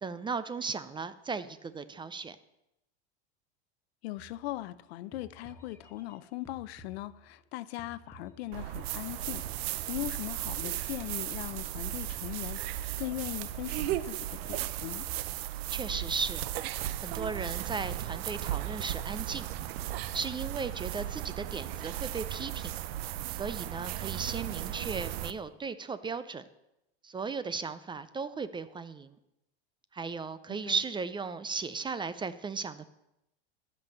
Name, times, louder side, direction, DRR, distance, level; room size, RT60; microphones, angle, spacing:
voice 1, 0.0-2.4 15.7-16.4 17.0-19.5 20.1-22.7 23.3-26.4 27.0-29.2 29.9-32.9, right 5 dB, 15° right, 0.5 m, -36 dB
voice 2, 4.0-15.1 30.5-30.8, left 16 dB, 70° left, 0.7 m, -40 dB
sound 1, 4.2-4.8 5.1-7.5 7.8-10.1 10.5-12.8 13.1-14.2 14.5-15.5 15.8-16.5, right 1 dB, 10° left, 1.7 m, -54 dB
sound 2, 8.5-25.3, right 13 dB, 70° right, 0.7 m, -36 dB
13.5 x 5.4 x 6.9 m
supercardioid pair, 110°, 32 cm